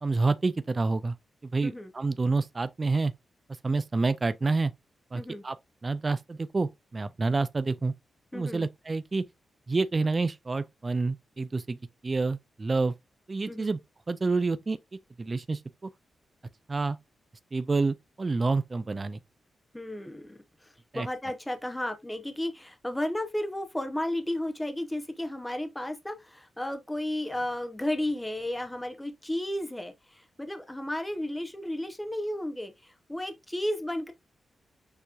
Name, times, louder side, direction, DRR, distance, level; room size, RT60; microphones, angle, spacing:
voice 1, 0.0-1.2 1.4-3.1 3.6-4.7 5.1-5.6 5.8-7.9 8.3-9.2 9.7-11.8 12.0-12.9 13.3-13.8 14.1-14.8 15.2-15.9 16.7-17.0 17.5-19.2 20.9-21.1, right 3 dB, 30° right, 0.4 m, -28 dB
voice 2, 8.3-8.7 13.5-13.7 19.7-34.1, left 1 dB, 10° left, 0.7 m, -33 dB
6.8 x 2.9 x 2.4 m
wide cardioid pair, 110°, 0 cm